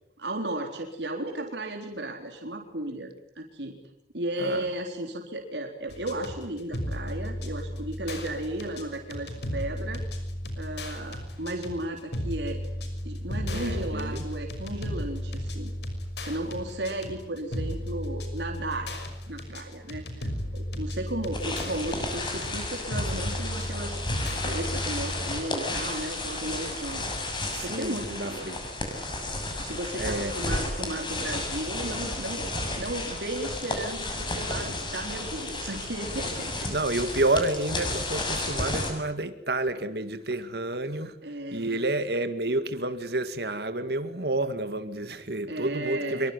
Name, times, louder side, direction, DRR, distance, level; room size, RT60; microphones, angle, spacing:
voice 1, 0.2-3.1 3.4-3.8 4.1-10.0 10.6-12.6 13.0-15.7 16.2-18.9 19.3-24.0 24.4-28.5 29.5-32.5 32.8-36.7 41.2-41.9 45.5-46.3, right 1 dB, 80° right, 4.0 m, -35 dB
sound 1, 5.9-25.4, equal, 75° left, 6.0 m, -34 dB
voice 2, 13.5-14.2 27.5-28.6 30.0-30.4 36.7-41.1 41.5-46.3, right 2 dB, 65° right, 2.1 m, -29 dB
sound 2, 21.3-38.9, left 2 dB, 25° left, 7.0 m, -32 dB
25.5 x 23.5 x 9.8 m
head